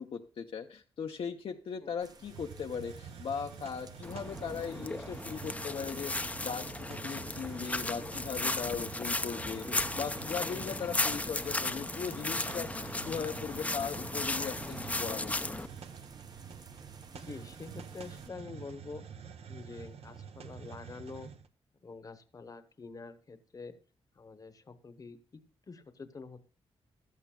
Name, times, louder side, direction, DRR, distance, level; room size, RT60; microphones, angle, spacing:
voice 1, 0.0-9.7 10.0-15.7, left 6 dB, 60° left, 4 dB, 0.7 m, -38 dB
sound 1, 2.0-18.3, right 4 dB, 40° right, 0.8 m, -55 dB
Hiss, 2.2-21.5, right 7 dB, 75° right, 0.8 m, -48 dB
sound 2, 4.0-15.7, left 2 dB, 15° left, 0.5 m, -36 dB
voice 2, 17.1-19.1 19.5-21.3 21.8-23.7 24.1-25.4 25.7-26.4, left 4 dB, 35° left, 11 dB, 1.0 m, -46 dB
15.0 x 12.0 x 2.3 m, 0.36 s
wide cardioid pair, 120°, 10 cm